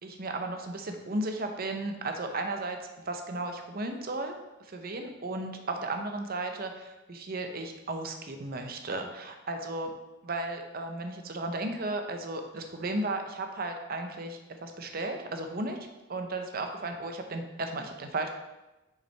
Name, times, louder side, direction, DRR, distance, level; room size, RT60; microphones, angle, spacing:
voice 1, 0.0-2.8 3.1-9.9 10.2-18.3, right 2 dB, 45° right, 5 dB, 0.7 m, -35 dB
6.9 x 5.9 x 3.3 m, 1.0 s
head